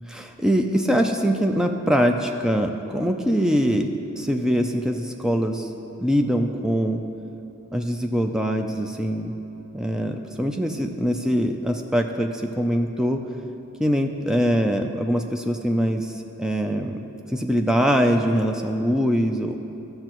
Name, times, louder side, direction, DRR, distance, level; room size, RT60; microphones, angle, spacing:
voice 1, 0.1-5.7 6.0-7.0 7.7-9.3 9.7-13.2 13.8-17.0 17.3-19.6, equal, 5° right, 3 dB, 0.4 m, -23 dB
15.0 x 6.6 x 3.0 m, 2.9 s
head